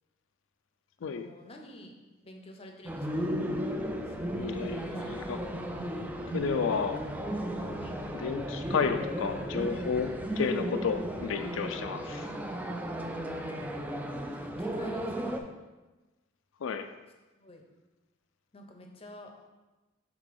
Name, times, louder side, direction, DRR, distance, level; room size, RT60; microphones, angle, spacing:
voice 1, 1.0-1.9 2.2-3.3 4.0-5.2 7.8-8.0 14.3-15.5 17.4-17.6 18.5-19.3, left 1 dB, 30° left, 3 dB, 0.7 m, -50 dB
sound 1, 2.9-15.4, equal, 10° right, 0.3 m, -35 dB
sound 2, 3.7-10.3, equal, 30° right, 1.2 m, -50 dB
voice 2, 4.4-5.4 6.3-7.0 8.1-12.3 16.6-16.9, left 6 dB, 70° left, 8 dB, 0.4 m, -32 dB
5.9 x 3.8 x 4.7 m, 1.1 s
head